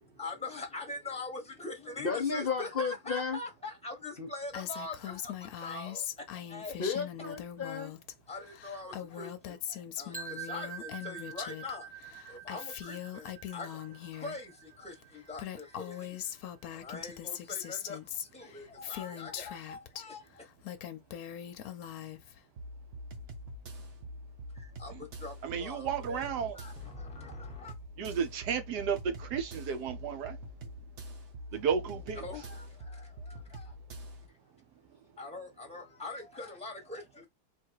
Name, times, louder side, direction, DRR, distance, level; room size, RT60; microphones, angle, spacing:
voice 1, 0.0-6.8 8.3-11.9 12.3-20.5 24.5-27.8 32.1-33.8 35.2-37.3, left 3 dB, 5° left, 1.2 m, -43 dB
voice 2, 2.0-3.4 4.2-4.3 6.8-7.9, left 5 dB, 40° left, 0.8 m, -33 dB
Female speech woman speaking, 4.5-8.1 8.4-11.7 12.0-14.4 15.0-15.1 15.3-20.0 20.5-22.4, left 10 dB, 65° left, 1.0 m, -41 dB
sound 1, 10.1-16.1, right 8 dB, 10° right, 0.3 m, -46 dB
sound 2, 22.6-34.3, equal, 50° right, 1.0 m, -45 dB
voice 3, 25.4-26.6 28.0-30.4 31.5-32.2, right 7 dB, 75° right, 1.3 m, -33 dB
3.6 x 2.6 x 4.6 m
omnidirectional pair, 1.8 m